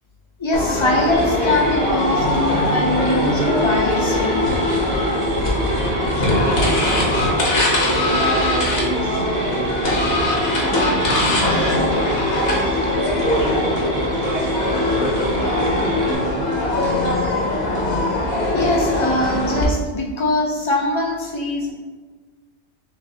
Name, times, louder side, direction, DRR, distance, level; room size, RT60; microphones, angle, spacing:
voice 1, 0.4-4.4 18.5-21.7, left 1 dB, 35° left, -2 dB, 0.5 m, -22 dB
sound 1, 0.5-19.6, left 1 dB, 60° left, 1.1 m, -21 dB
Mechanisms, 1.1-16.1, right 3 dB, 45° right, 0.7 m, -28 dB
voice 2, 5.9-15.5, right 1 dB, 70° right, -2 dB, 1.0 m, -31 dB
6.1 x 2.5 x 2.8 m, 1.4 s
omnidirectional pair, 1.2 m